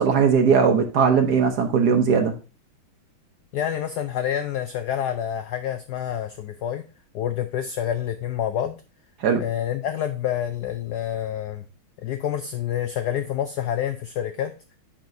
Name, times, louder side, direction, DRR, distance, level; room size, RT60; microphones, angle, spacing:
voice 1, 0.0-2.3 9.2-9.4, right 6 dB, 60° right, 5 dB, 1.1 m, -19 dB
voice 2, 3.5-6.8 7.1-8.8 9.4-11.6 12.0-14.5, left 10 dB, 85° left, 8 dB, 0.9 m, -28 dB
10.5 x 4.4 x 2.6 m, 0.33 s
omnidirectional pair, 2.3 m